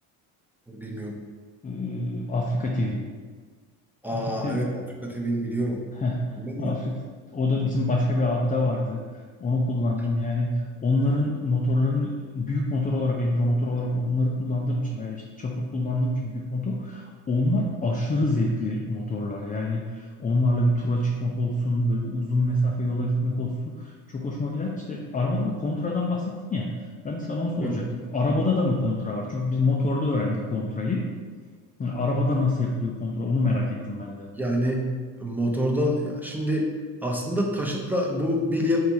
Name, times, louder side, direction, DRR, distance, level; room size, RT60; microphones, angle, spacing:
voice 1, 0.7-1.2 4.0-5.8 6.3-6.7 27.6-27.8 34.3-34.9 35.2-36.7 37.0-38.8, equal, 5° right, -1 dB, 0.7 m, -27 dB
voice 2, 1.6-3.0 4.1-4.6 6.0-6.3 6.6-6.9 7.3-10.5 10.8-23.5 23.8-26.7 27.0-31.0 31.8-34.3, left 2 dB, 20° left, -1 dB, 0.4 m, -26 dB
3.3 x 2.8 x 4.5 m, 1.5 s
supercardioid pair, 75°, 40 cm